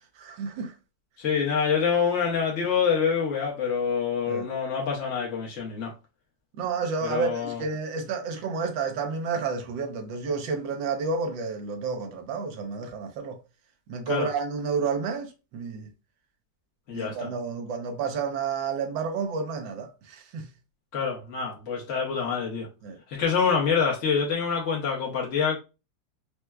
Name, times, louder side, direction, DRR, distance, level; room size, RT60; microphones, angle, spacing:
voice 1, 0.2-0.7 4.3-4.5 6.6-13.4 13.9-15.9 16.9-20.5 22.8-23.0, right 5 dB, 80° right, 1.4 m, -30 dB
voice 2, 1.2-5.9 7.0-7.6 14.1-14.3 16.9-17.3 20.9-22.7 23.1-25.6, left 6 dB, 55° left, 0.9 m, -26 dB
4.5 x 2.1 x 2.2 m
omnidirectional pair, 2.0 m